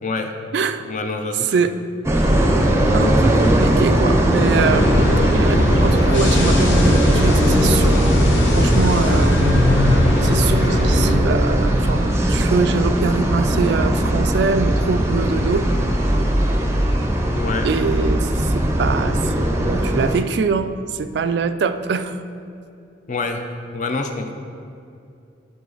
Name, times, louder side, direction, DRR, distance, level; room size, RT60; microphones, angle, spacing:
voice 1, 0.0-0.4 0.8-1.6 17.3-17.7 23.1-24.3, left 3 dB, 40° left, 6 dB, 0.5 m, -27 dB
voice 2, 0.5-0.8 1.5-1.7 2.9-8.0 8.5-9.4 10.2-15.7 17.6-22.2, right 5 dB, 65° right, 10 dB, 0.3 m, -23 dB
sound 1, 2.0-20.2, right 1 dB, 15° right, 0.6 m, -19 dB
sound 2, 4.4-11.2, left 1 dB, 85° left, 1.0 m, -20 dB
11.5 x 4.1 x 3.9 m, 2.5 s
head